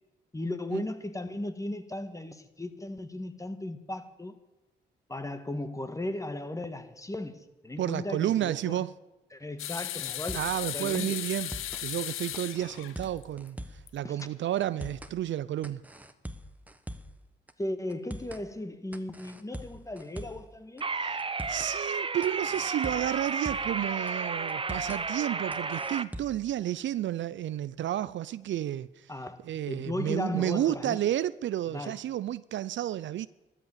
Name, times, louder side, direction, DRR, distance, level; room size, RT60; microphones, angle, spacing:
voice 1, 0.3-4.4 5.1-8.8 9.3-10.4 10.7-11.2 14.0-14.2 17.6-20.9 29.1-29.4 29.7-31.0 31.7-32.0, left 1 dB, 15° left, 1.7 m, -36 dB
voice 2, 7.8-8.9 10.3-11.5 11.8-13.6 13.9-15.8 21.0-21.2 21.5-29.1 29.5-33.3, right 12 dB, 65° right, 0.5 m, -31 dB
sound 1, 9.6-13.5 13.9-14.0 15.1-15.2, left 13 dB, 75° left, 0.7 m, -36 dB
sound 2, 10.1-10.6 10.9-11.0 11.3-11.8 12.3-13.9 14.2-14.3 14.6-15.2 15.6-17.2 17.5-17.6 17.9-18.4 18.9-20.5 20.8-20.9 21.2-21.7 22.2-23.8 24.1-24.2 24.5-25.0 25.5-26.5, equal, 5° right, 1.3 m, -42 dB
sound 3, 20.8-26.0, right 4 dB, 25° right, 0.8 m, -32 dB
13.5 x 12.5 x 7.4 m
supercardioid pair, 50°, 21 cm